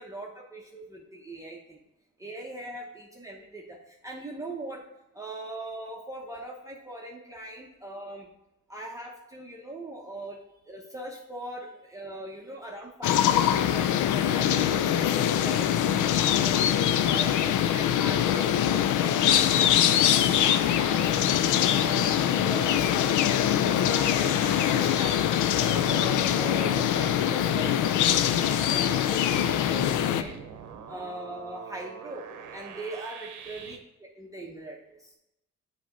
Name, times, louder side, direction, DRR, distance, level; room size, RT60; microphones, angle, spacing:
voice 1, 0.0-1.8 2.2-4.8 5.1-8.3 8.7-10.4 10.7-16.7 17.1-21.1 21.6-23.1 23.7-25.1 25.4-30.4 30.9-32.2 32.5-35.1, right 1 dB, 10° right, -2 dB, 0.9 m, -40 dB
sound 1, 13.0-30.2, left 10 dB, 80° left, 0.5 m, -23 dB
sound 2, 20.5-33.8, right 7 dB, 75° right, 0.8 m, -44 dB
7.5 x 2.9 x 5.3 m, 0.87 s
cardioid pair, 90°, 30 cm